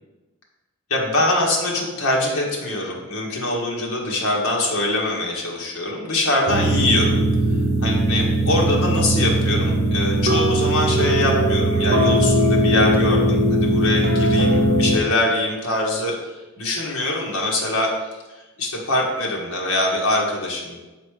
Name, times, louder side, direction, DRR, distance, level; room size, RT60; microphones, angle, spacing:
voice 1, 0.9-7.2 7.8-17.9 18.3-20.8, left 2 dB, 85° left, -2 dB, 1.5 m, -23 dB
sound 1, 6.5-15.0, right 1 dB, 45° right, 1.0 m, -19 dB
6.8 x 4.2 x 4.8 m, 1.1 s
head